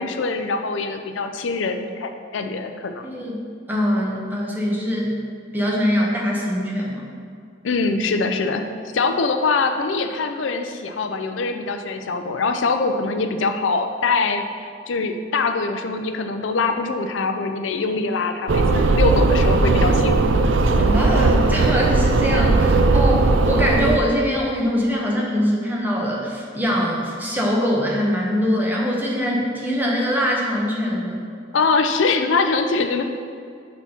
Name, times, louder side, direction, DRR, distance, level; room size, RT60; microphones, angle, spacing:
voice 1, 0.0-3.1 7.6-8.7 8.9-20.2 31.5-33.0, left 4 dB, 80° left, 6 dB, 0.5 m, -23 dB
voice 2, 3.0-3.4 3.7-5.1 5.5-7.1 20.8-31.2, equal, 10° right, -3 dB, 1.1 m, -23 dB
sound 1, 18.5-24.0, right 3 dB, 75° right, 0.4 m, -17 dB
6.2 x 4.3 x 5.4 m, 2.3 s
head